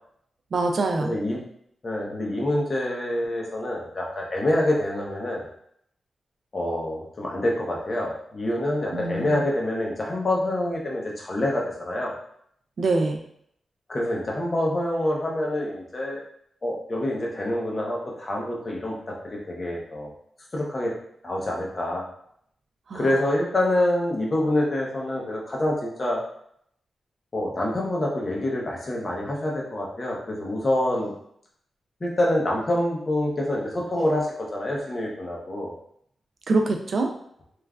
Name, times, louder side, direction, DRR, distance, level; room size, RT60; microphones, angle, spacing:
voice 1, 0.5-1.1 8.9-9.4 12.8-13.2 22.9-23.1 36.5-37.1, right 3 dB, 55° right, 4 dB, 0.4 m, -24 dB
voice 2, 1.0-1.4 1.8-5.5 6.5-12.1 13.9-16.2 16.6-20.1 20.5-20.9 21.2-22.0 22.9-26.2 27.3-31.1 32.0-35.7, left 1 dB, 35° left, -2 dB, 0.7 m, -26 dB
3.1 x 2.3 x 2.3 m, 0.69 s
wide cardioid pair, 100°, 0 cm